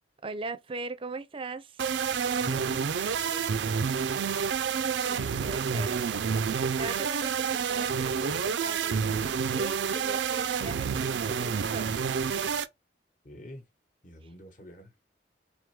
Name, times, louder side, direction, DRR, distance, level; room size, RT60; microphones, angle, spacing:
voice 1, 0.2-1.8 5.0-12.1 14.2-14.3, right 3 dB, 30° right, 0.5 m, -40 dB
sound 1, 1.8-12.7, right 6 dB, 85° right, 0.4 m, -29 dB
voice 2, 2.4-4.4 13.2-13.7 14.0-14.9, equal, 45° left, 1.0 m, -46 dB
3.6 x 3.4 x 3.3 m
head